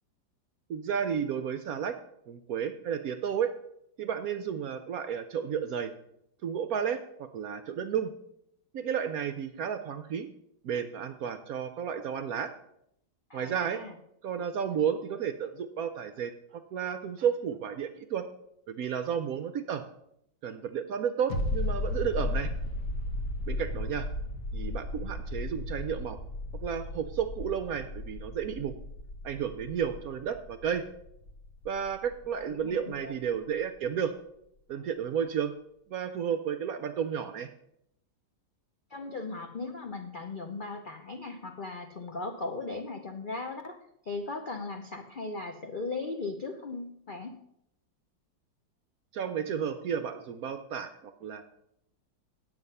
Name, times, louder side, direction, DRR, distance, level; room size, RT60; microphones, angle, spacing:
voice 1, 0.7-1.9 2.3-3.5 4.0-5.9 6.4-8.1 8.7-10.3 10.6-12.5 13.3-13.8 14.2-18.2 18.7-19.8 20.4-22.5 23.5-24.1 24.5-26.2 26.6-28.7 29.2-30.8 31.6-34.1 34.7-35.5 35.9-37.5 49.1-51.4, right 8 dB, 70° right, 10 dB, 0.9 m, -32 dB
voice 2, 13.3-13.9 32.3-33.2 38.9-43.8 44.0-47.4, left 3 dB, 75° left, 5 dB, 0.4 m, -38 dB
impact-rumble-hard, 21.3-32.6 32.9-33.0, left 2 dB, 55° left, 1.1 m, -35 dB
9.5 x 7.9 x 5.4 m, 0.76 s
omnidirectional pair, 2.0 m